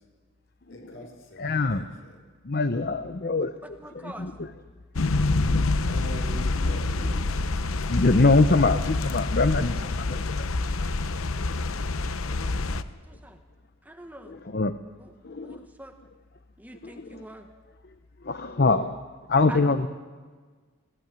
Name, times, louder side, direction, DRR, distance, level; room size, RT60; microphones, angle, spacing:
voice 1, 0.7-2.2 5.7-7.2, right 1 dB, 60° left, 2 dB, 5.3 m, -42 dB
voice 2, 1.4-1.8 2.4-3.5 4.0-4.5 5.5-5.7 7.9-10.5 12.4-12.6 14.3-14.7 15.2-15.6 16.8-17.2 18.2-19.0 19.3-19.9, left 3 dB, 45° left, 10 dB, 0.7 m, -24 dB
voice 3, 3.6-4.3 12.7-13.4 13.8-14.4 15.0-15.1 15.4-15.9 16.6-17.5 19.5-19.9, right 1 dB, 10° right, 5 dB, 1.1 m, -44 dB
sound 1, 5.0-12.8, left 3 dB, 75° left, 0.8 m, -27 dB
21.5 x 15.5 x 9.4 m, 1.5 s
head